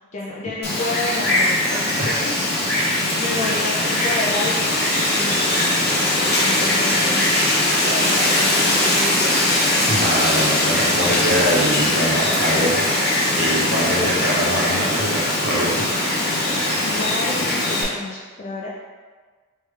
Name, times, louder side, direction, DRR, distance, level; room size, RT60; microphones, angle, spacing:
voice 1, 0.1-2.4 2.7-4.7 5.1-9.6 16.8-18.7, left 2 dB, 35° left, -6 dB, 0.4 m, -30 dB
Wind, 0.6-17.8, left 1 dB, 50° left, 0.9 m, -20 dB
voice 2, 9.9-12.8 13.4-15.9, equal, 50° right, -5 dB, 0.7 m, -23 dB
3.3 x 3.2 x 3.2 m, 1.4 s
head